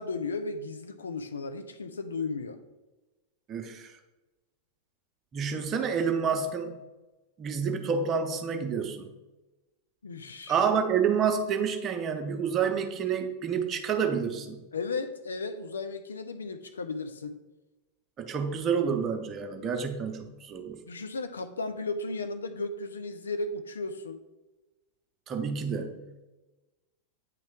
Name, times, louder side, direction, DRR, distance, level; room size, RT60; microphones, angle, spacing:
voice 1, 0.0-2.6 10.0-10.6 14.7-17.4 20.9-24.2, left 3 dB, 70° left, 9 dB, 0.4 m, -35 dB
voice 2, 3.5-4.0 5.3-6.8 7.4-9.1 10.5-14.6 18.2-20.8 25.3-26.0, right 6 dB, 30° right, 5 dB, 0.7 m, -29 dB
9.0 x 3.1 x 3.5 m, 1.1 s
figure-of-eight pair, 90°, 0 cm